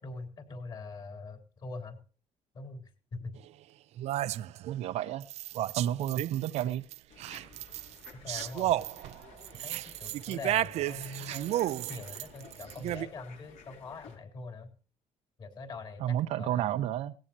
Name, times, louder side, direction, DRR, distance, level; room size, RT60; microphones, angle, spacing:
voice 1, 0.0-2.0 2.5-3.3 6.2-6.3 8.2-8.7 9.6-14.7 15.4-16.9, left 3 dB, 40° left, 5 dB, 3.6 m, -43 dB
sound 1, 3.4-3.5 4.0-4.7 5.2-6.6 6.9-13.1, right 14 dB, 65° right, 0.5 m, -33 dB
voice 2, 4.7-5.2 5.8-6.8 16.0-17.1, right 12 dB, 90° right, 6 dB, 0.9 m, -31 dB
sound 2, 7.1-14.2, left 5 dB, 70° left, 6.4 m, -54 dB
19.0 x 14.0 x 2.9 m, 0.37 s
cardioid pair, 180°, 12 cm